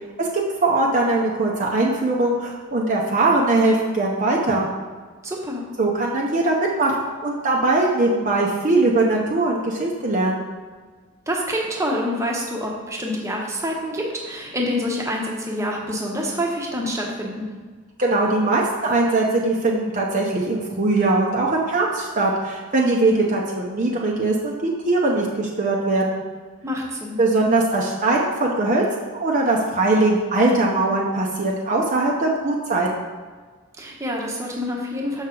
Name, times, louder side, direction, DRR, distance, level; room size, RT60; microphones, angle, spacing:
voice 1, 0.6-4.7 5.8-10.5 18.0-26.2 27.2-28.8 29.1-32.9, right 2 dB, 35° right, -2 dB, 0.7 m, -21 dB
voice 2, 5.2-5.7 11.3-17.5 26.6-27.2 33.8-35.2, equal, 15° right, -1 dB, 0.9 m, -27 dB
7.1 x 5.7 x 3.8 m, 1.5 s
head